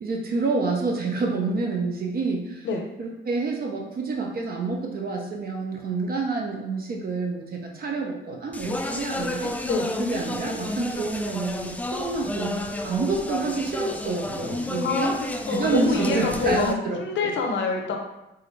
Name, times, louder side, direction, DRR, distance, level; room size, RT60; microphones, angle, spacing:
voice 1, 0.0-2.7 3.0-9.7 10.0-15.1 15.5-17.3, right 3 dB, 50° right, 0 dB, 0.6 m, -28 dB
Speech, 8.5-16.7, left 2 dB, 5° left, 0.3 m, -31 dB
voice 2, 15.4-18.0, left 4 dB, 70° left, 2 dB, 0.8 m, -26 dB
4.7 x 2.5 x 3.2 m, 0.92 s
cardioid pair, 90°, 20 cm